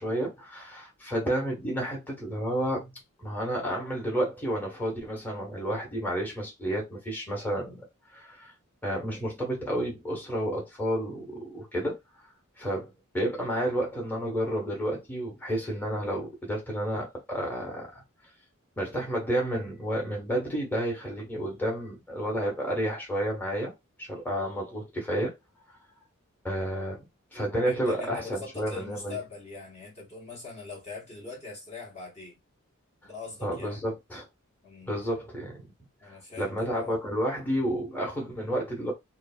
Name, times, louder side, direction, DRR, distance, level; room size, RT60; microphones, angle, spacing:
voice 1, 0.0-2.9 3.2-7.9 8.1-8.5 8.8-12.0 12.6-18.0 18.8-23.7 24.0-25.3 25.7-25.8 26.4-27.1 27.3-29.2 33.4-34.3 34.9-35.7 36.0-38.9, right 1 dB, 10° left, 0.9 m, -31 dB
voice 2, 27.6-32.4 33.0-33.8 34.6-35.0 36.0-37.0, left 4 dB, 30° left, 0.8 m, -42 dB
3.2 x 2.1 x 2.4 m
head